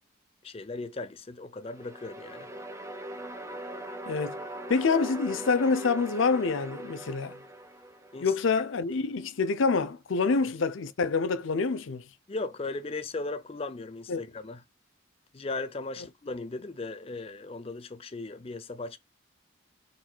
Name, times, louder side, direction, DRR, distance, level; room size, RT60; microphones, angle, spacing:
voice 1, 0.4-2.5 8.1-8.3 10.3-10.5 12.3-14.6 15.3-19.0, left 3 dB, 30° left, 0.5 m, -37 dB
sound 1, 1.6-8.7, right 1 dB, 15° right, 0.6 m, -41 dB
voice 2, 4.1-4.4 4.7-7.4 8.2-12.0 14.1-14.2, left 4 dB, 80° left, 0.5 m, -26 dB
4.5 x 4.1 x 2.2 m
head